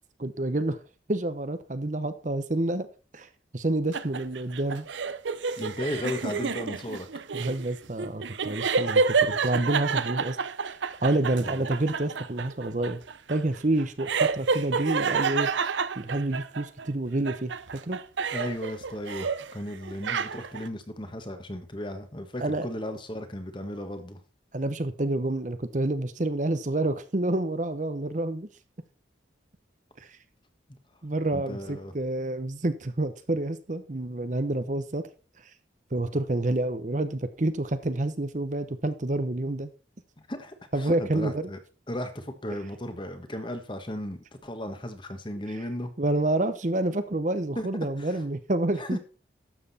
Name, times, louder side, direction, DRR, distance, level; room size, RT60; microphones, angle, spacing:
voice 1, 0.2-0.8 1.1-2.9 3.1-3.3 3.5-4.9 7.3-10.4 11.0-13.0 13.3-18.0 22.4-22.7 24.5-28.5 31.0-35.1 35.9-39.7 40.7-41.5 46.0-49.0, right 2 dB, 40° right, 0.8 m, -28 dB
sound 1, 3.9-16.9 17.3-19.5 19.8-20.7, right 5 dB, 80° right, 0.7 m, -29 dB
voice 2, 5.6-7.1 11.4-11.5 18.3-24.2 31.3-31.9 40.3-41.6 41.9-45.9 47.6-47.7 48.0-48.2 48.8-49.0, left 1 dB, 25° left, 1.4 m, -35 dB
12.0 x 7.6 x 4.2 m
head